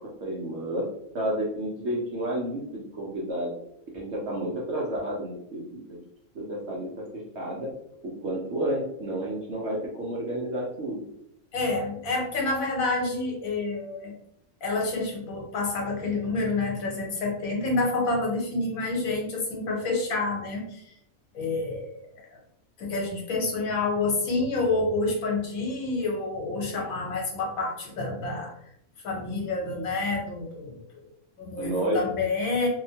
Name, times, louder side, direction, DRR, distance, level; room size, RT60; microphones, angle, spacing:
voice 1, 0.2-0.8 1.1-3.5 3.9-6.0 6.3-6.9 7.3-7.7 8.2-11.0 31.6-32.0, right 1 dB, 60° right, -5 dB, 0.8 m, -30 dB
voice 2, 11.5-14.1 14.6-20.9 21.3-21.9 22.8-28.5 29.0-30.8 31.4-32.7, left 3 dB, 75° left, -1 dB, 1.2 m, -28 dB
2.8 x 2.1 x 2.7 m, 0.75 s
omnidirectional pair, 1.5 m